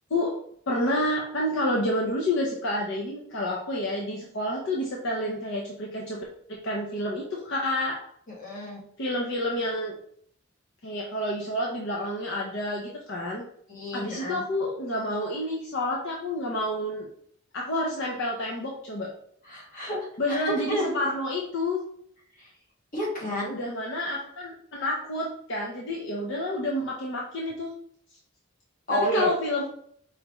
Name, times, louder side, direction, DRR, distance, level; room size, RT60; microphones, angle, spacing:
voice 1, 0.7-8.0 9.0-9.9 10.8-13.4 13.9-17.1 17.5-19.1 20.2-21.8 23.5-27.7 28.9-29.7, left 1 dB, 60° left, -1 dB, 0.7 m, -29 dB
voice 2, 8.3-8.8 13.7-14.4 19.5-20.0 20.3-20.9 22.4-22.5 22.9-23.5 28.9-29.3, equal, 40° left, -3 dB, 1.5 m, -30 dB
4.9 x 3.3 x 3.0 m, 0.64 s
head